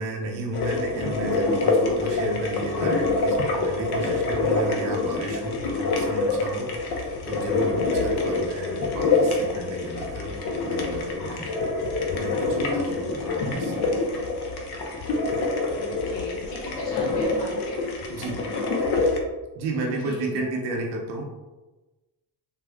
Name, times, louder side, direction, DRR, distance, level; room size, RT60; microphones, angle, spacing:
voice 1, 0.0-11.5 12.1-14.1 18.1-18.4 19.5-21.2, right 2 dB, 90° right, 0 dB, 0.6 m, -33 dB
sound 1, 0.5-19.2, left 3 dB, 55° left, 0.7 m, -26 dB
voice 2, 15.8-17.8 19.7-20.5, left 1 dB, 90° left, -4 dB, 1.0 m, -37 dB
3.4 x 2.3 x 2.3 m, 1.1 s
hypercardioid pair, 55°, 47 cm